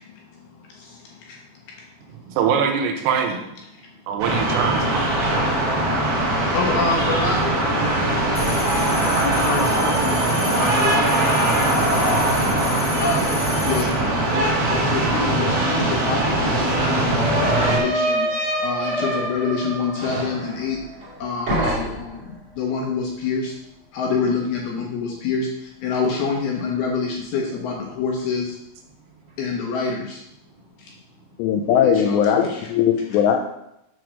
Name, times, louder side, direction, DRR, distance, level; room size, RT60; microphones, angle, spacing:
voice 1, 0.0-1.4 6.5-13.3 13.7-18.3 18.6-20.8 21.2-23.5 23.9-28.6 29.4-30.2 30.8-30.9 31.8-32.7, left 4 dB, 70° left, 2.7 m, -27 dB
voice 2, 2.3-3.5 4.1-5.2, right 7 dB, 85° right, 3.7 m, -23 dB
sound 1, 4.2-17.8, right 1 dB, 55° right, 2.6 m, -21 dB
sound 2, 8.4-13.9, left 1 dB, 40° left, 1.8 m, -33 dB
sound 3, 15.6-15.7 15.9-21.2 21.5-22.2, equal, 30° right, 3.0 m, -26 dB
voice 3, 31.4-33.4, left 8 dB, 85° left, 2.4 m, -19 dB
8.2 x 4.7 x 6.4 m
omnidirectional pair, 5.7 m